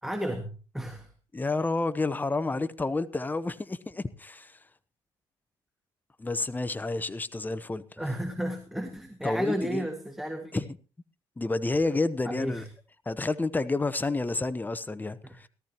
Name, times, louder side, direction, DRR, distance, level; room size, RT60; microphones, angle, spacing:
voice 1, 0.0-1.1 8.0-10.6 12.2-12.7 15.2-15.4, equal, 5° right, 1.8 m, -33 dB
voice 2, 1.3-4.6 6.2-7.8 9.2-9.8 10.5-10.6 11.4-12.6 13.1-15.5, left 3 dB, 15° left, 0.8 m, -30 dB
18.0 x 13.5 x 3.0 m
cardioid pair, 80°, 10 cm